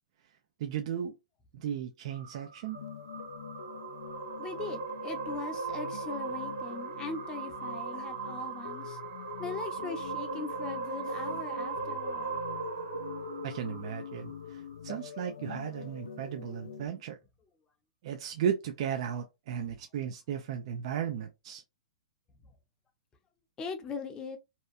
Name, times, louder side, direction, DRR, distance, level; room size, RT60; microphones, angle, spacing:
voice 1, 0.6-1.1 1.5-2.8 13.4-17.2 18.0-21.6, right 8 dB, 55° right, 0.4 m, -35 dB
sound 1, 2.1-14.6, right 5 dB, 85° right, 0.8 m, -38 dB
sound 2, 2.7-16.9, left 7 dB, 85° left, 0.4 m, -44 dB
voice 2, 4.4-9.0 9.4-12.4 23.6-24.4, left 4 dB, 20° left, 0.6 m, -40 dB
2.8 x 2.2 x 2.5 m
hypercardioid pair, 140°, 4 cm